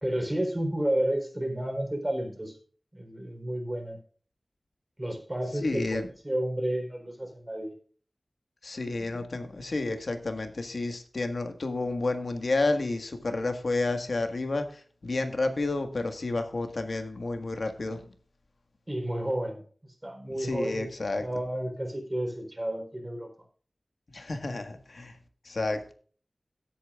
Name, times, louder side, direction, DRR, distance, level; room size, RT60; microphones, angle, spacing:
voice 1, 0.0-2.5 2.9-4.0 5.0-7.8 18.9-23.3, right 1 dB, 20° right, 4 dB, 4.0 m, -31 dB
voice 2, 5.6-6.1 8.6-14.6 15.0-18.0 20.4-21.2 24.1-25.1 25.5-25.9, left 2 dB, 75° left, 6 dB, 1.7 m, -30 dB
17.5 x 8.7 x 2.5 m, 0.43 s
wide cardioid pair, 60°, 0 cm